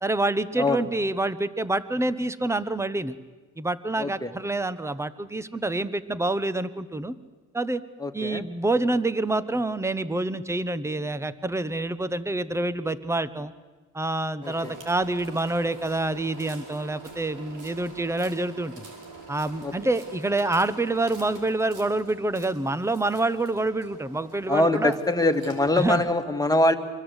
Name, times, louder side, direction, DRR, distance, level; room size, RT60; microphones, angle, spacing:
voice 1, 0.0-3.1 3.6-7.1 7.5-7.8 8.1-13.5 13.9-18.9 19.3-25.0 25.7-26.0, right 2 dB, 10° right, 15 dB, 1.1 m, -27 dB
voice 2, 4.0-4.3 8.0-8.4 14.4-14.7 19.6-19.7 24.5-26.8, left 1 dB, 10° left, 6 dB, 2.0 m, -23 dB
sound 1, 14.4-26.0, right 3 dB, 90° right, 4.9 m, -46 dB
25.5 x 22.5 x 8.2 m, 1.3 s
cardioid pair, 90°, 30 cm